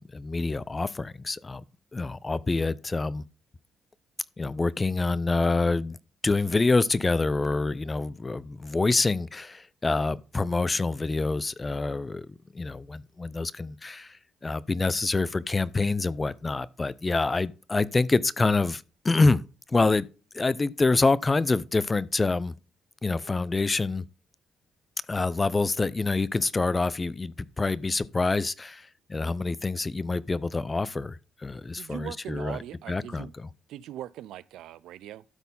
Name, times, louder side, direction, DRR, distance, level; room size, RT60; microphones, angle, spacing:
voice 1, 0.0-1.6 1.9-3.2 4.4-6.0 6.2-12.3 12.5-19.4 19.7-20.1 20.3-22.5 23.0-24.0 25.1-32.6 32.9-33.3, left 3 dB, 25° left, 0.5 m, -26 dB
voice 2, 31.7-33.3 33.7-35.2, right 12 dB, 85° right, 0.4 m, -40 dB
12.5 x 4.2 x 5.4 m
cardioid pair, 90°, 0 cm